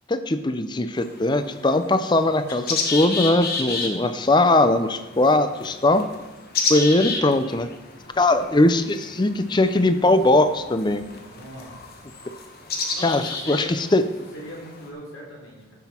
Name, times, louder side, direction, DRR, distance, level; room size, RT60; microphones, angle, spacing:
voice 1, 0.1-6.1 6.7-7.7 8.2-11.0 13.0-14.0, left 2 dB, 20° left, 10 dB, 0.5 m, -20 dB
sound 1, 1.0-14.9, left 4 dB, 45° left, 1.4 m, -32 dB
voice 2, 11.2-11.9 12.9-13.9 14.3-15.7, equal, 80° left, -4 dB, 3.9 m, -40 dB
15.0 x 6.0 x 4.4 m, 1.1 s
head